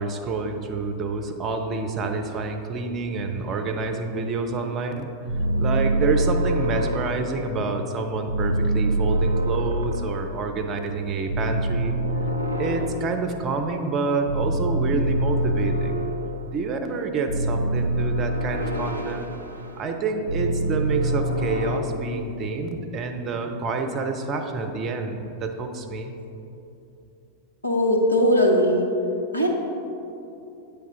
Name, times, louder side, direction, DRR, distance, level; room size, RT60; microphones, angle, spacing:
voice 1, 0.0-5.1 5.6-12.0 12.6-16.1 16.5-19.3 19.8-26.1, right 3 dB, 30° right, 5 dB, 0.6 m, -28 dB
sound 1, 5.3-7.8 8.3-10.8 11.3-13.7 14.3-16.6 17.3-20.0 20.3-21.8, right 1 dB, 75° right, 0.5 m, -25 dB
voice 2, 27.6-28.8 29.3-29.5, equal, 85° left, 0 dB, 0.9 m, -19 dB
8.5 x 3.4 x 5.8 m, 2.8 s
figure-of-eight pair, 90°, 0 cm